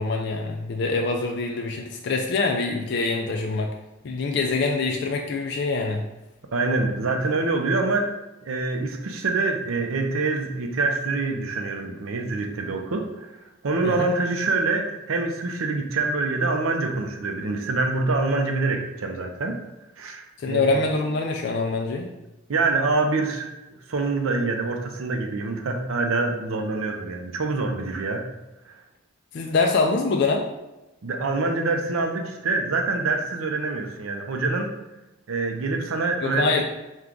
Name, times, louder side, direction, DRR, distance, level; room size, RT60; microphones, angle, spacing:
voice 1, 0.0-3.7 4.0-6.0 13.8-14.1 20.4-22.1 29.3-30.5 36.2-36.6, left 3 dB, 55° left, 1 dB, 0.3 m, -24 dB
voice 2, 6.5-8.1 8.4-13.3 13.6-19.6 20.0-20.7 22.5-23.5 23.9-28.3 28.6-28.8 31.0-34.7 35.3-36.6, right 3 dB, 85° right, 4 dB, 0.6 m, -25 dB
4.5 x 2.3 x 3.8 m, 0.99 s
head